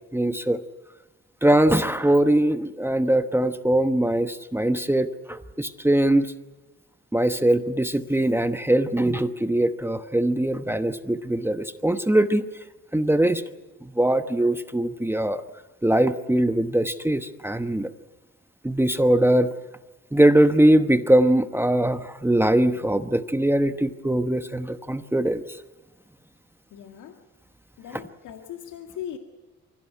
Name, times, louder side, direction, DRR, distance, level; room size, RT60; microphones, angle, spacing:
voice 1, 0.1-0.6 1.4-6.3 7.1-12.5 12.9-13.4 13.8-15.4 15.8-17.9 18.6-19.5 20.1-25.4, right 1 dB, 10° right, 9 dB, 1.1 m, -21 dB
voice 2, 26.7-27.2 27.8-29.2, left 10 dB, 85° left, 4 dB, 1.9 m, -39 dB
24.5 x 16.5 x 9.4 m, 1.2 s
cardioid pair, 90°, 30 cm